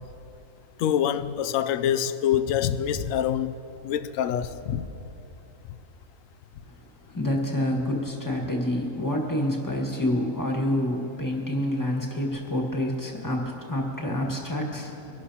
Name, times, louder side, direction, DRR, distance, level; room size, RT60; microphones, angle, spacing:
voice 1, 0.8-3.6 3.8-4.8, left 9 dB, 70° left, 0.9 m, -25 dB
voice 2, 7.1-14.9, left 1 dB, 15° left, 1.6 m, -27 dB
24.0 x 12.0 x 2.9 m
omnidirectional pair, 1.6 m